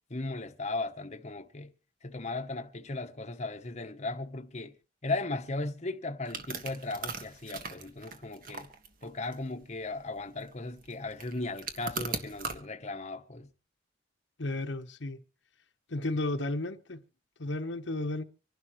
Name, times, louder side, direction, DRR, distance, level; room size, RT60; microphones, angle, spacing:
voice 1, 0.1-1.7 2.0-4.7 5.0-8.7 9.0-13.5, left 2 dB, 35° left, 1.0 m, -36 dB
sound 1, 6.2-12.6, right 4 dB, 50° right, 1.6 m, -40 dB
voice 2, 14.4-15.2 15.9-17.0 17.4-18.2, left 2 dB, 75° left, 1.1 m, -33 dB
25.5 x 11.5 x 3.1 m
head